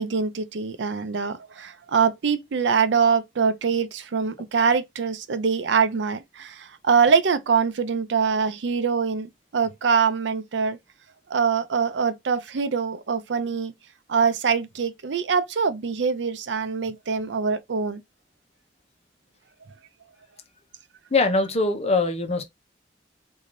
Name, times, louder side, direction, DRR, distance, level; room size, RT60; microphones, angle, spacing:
voice 1, 0.0-10.8 11.3-13.7 14.1-18.0, right 6 dB, 80° right, 0.5 m, -24 dB
voice 2, 21.1-22.4, left 3 dB, 35° left, 0.9 m, -22 dB
3.8 x 2.7 x 3.0 m
head